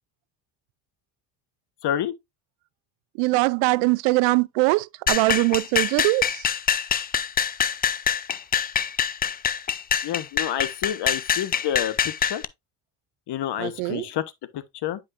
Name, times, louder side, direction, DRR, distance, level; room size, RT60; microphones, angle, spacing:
voice 1, 1.8-2.1 10.0-12.0 12.2-12.4 13.3-14.2 14.5-15.0, left 11 dB, 55° left, 1.3 m, -28 dB
voice 2, 3.2-6.5 13.6-14.1, right 23 dB, 80° right, 0.6 m, -22 dB
sound 1, 5.1-12.4, left 8 dB, 20° left, 0.4 m, -25 dB
9.6 x 5.4 x 2.5 m
supercardioid pair, 100°, 49 cm